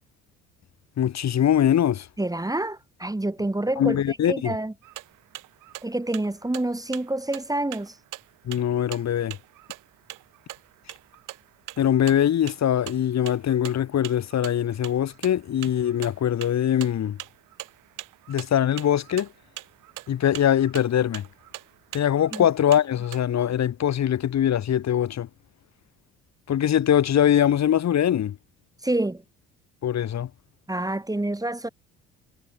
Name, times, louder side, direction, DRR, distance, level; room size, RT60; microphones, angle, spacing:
voice 1, 1.0-2.1 3.8-4.5 8.4-9.4 11.8-17.2 18.3-19.3 20.1-21.3 21.9-25.3 26.5-28.4 29.8-30.3, left 10 dB, 50° left, 4.7 m, -22 dB
voice 2, 2.2-4.7 5.8-8.0 22.3-22.5 28.8-29.2 30.7-31.7, right 1 dB, 10° right, 3.2 m, -28 dB
sound 1, 4.8-23.2, right 16 dB, 65° right, 7.3 m, -43 dB
hypercardioid pair, 55°, 33 cm